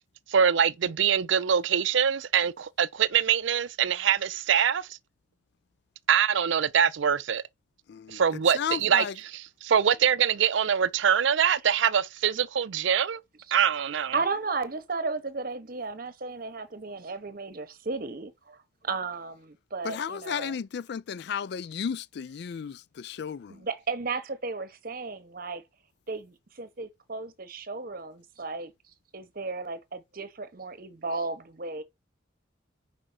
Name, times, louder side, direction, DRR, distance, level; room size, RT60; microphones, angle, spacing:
voice 1, 0.3-4.9 6.1-7.4 8.1-9.1 9.6-13.2 13.5-14.2, right 8 dB, 70° right, 0.5 m, -24 dB
voice 2, 7.9-8.2 8.5-9.2 19.8-23.7, left 7 dB, 55° left, 0.3 m, -34 dB
voice 3, 14.1-20.6 23.5-25.6 26.1-28.7 29.1-31.8, right 4 dB, 45° right, 0.9 m, -34 dB
5.1 x 4.9 x 5.6 m
head